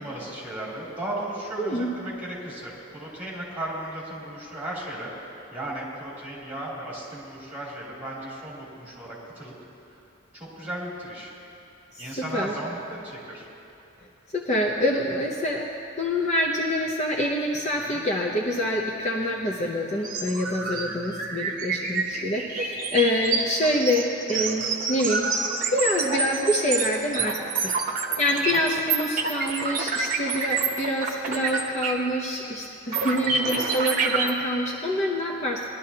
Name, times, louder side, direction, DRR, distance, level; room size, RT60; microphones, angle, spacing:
voice 1, 0.0-5.1 5.5-9.5 10.3-11.3 12.0-13.5 17.7-18.0 24.3-24.5 28.3-28.6 33.0-33.4, right 1 dB, 10° right, -7 dB, 3.2 m, -36 dB
voice 2, 1.6-1.9 11.9-12.5 14.3-15.7 16.0-25.3 25.7-27.4 27.6-27.7 28.2-35.6, left 1 dB, 35° left, -1 dB, 0.7 m, -26 dB
sound 1, 20.0-32.1 32.4-32.5 32.9-34.3, right 4 dB, 40° right, 0.9 m, -28 dB
20.0 x 12.0 x 2.9 m, 2.7 s
head